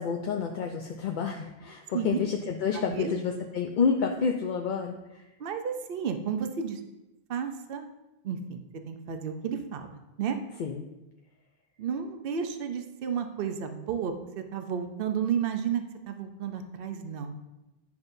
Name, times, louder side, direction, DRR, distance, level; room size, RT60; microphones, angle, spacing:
voice 1, 0.0-5.2 10.6-10.8, left 6 dB, 55° left, 2 dB, 0.6 m, -29 dB
voice 2, 5.4-6.8 7.3-7.9 8.2-10.4 11.8-17.4, right 7 dB, 65° right, 7 dB, 0.8 m, -32 dB
10.5 x 5.8 x 2.6 m, 0.98 s
omnidirectional pair, 1.1 m